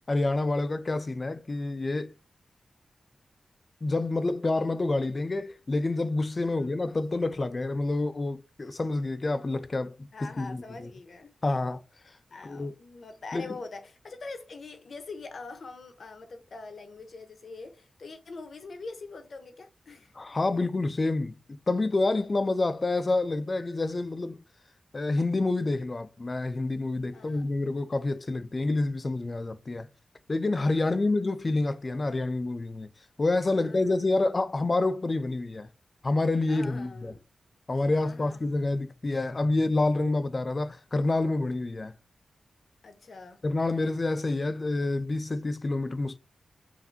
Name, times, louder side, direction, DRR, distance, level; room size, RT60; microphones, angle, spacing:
voice 1, 0.1-2.1 3.8-10.9 11.4-11.8 12.4-12.7 13.3-13.5 20.2-24.4 24.9-29.9 30.3-32.9 33.2-35.7 36.0-37.1 37.7-41.9 43.4-46.2, left 2 dB, 35° left, 0.4 m, -28 dB
voice 2, 6.4-6.8 10.1-11.3 12.3-20.1 27.1-27.4 30.7-31.3 33.6-34.1 36.5-37.2 37.9-38.7 42.8-43.4, left 3 dB, 60° left, 0.8 m, -44 dB
5.6 x 2.6 x 2.7 m
wide cardioid pair, 105°, 0 cm